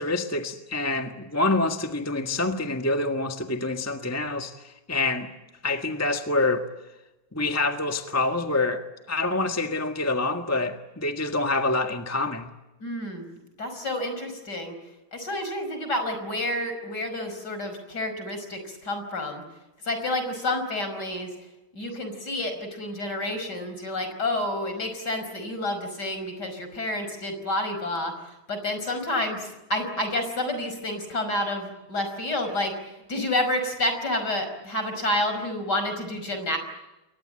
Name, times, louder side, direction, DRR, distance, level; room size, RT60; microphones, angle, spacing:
voice 1, 0.0-5.3 5.6-6.6 7.3-12.5, left 2 dB, 10° left, 5 dB, 1.4 m, -26 dB
voice 2, 12.8-13.3 13.6-14.7 15.1-19.4 19.8-21.3 21.7-28.1 28.5-36.6, left 1 dB, 50° left, 7 dB, 5.9 m, -29 dB
29.0 x 23.0 x 9.0 m, 0.98 s
omnidirectional pair, 2.2 m